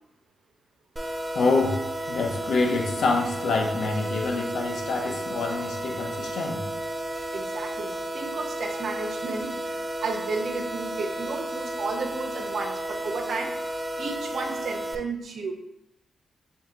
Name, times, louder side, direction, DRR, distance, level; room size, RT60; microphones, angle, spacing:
sound 1, 1.0-15.0, right 1 dB, 10° right, 0.6 m, -33 dB
voice 1, 1.3-1.7 2.1-6.6, left 3 dB, 75° left, 2 dB, 0.8 m, -26 dB
voice 2, 7.3-13.5 14.0-15.5, right 4 dB, 65° right, 3 dB, 0.7 m, -33 dB
4.1 x 2.7 x 3.7 m, 0.83 s
cardioid pair, 70°, 0 cm